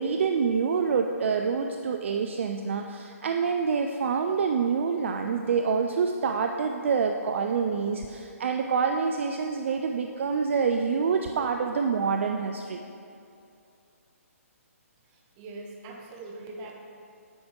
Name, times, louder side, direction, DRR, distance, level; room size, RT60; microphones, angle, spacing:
voice 1, 0.0-12.8, right 5 dB, 55° right, 5 dB, 0.4 m, -27 dB
voice 2, 15.0-16.8, right 2 dB, 25° right, 0 dB, 1.0 m, -42 dB
8.9 x 6.0 x 3.7 m, 2.5 s
figure-of-eight pair, 135°, 8 cm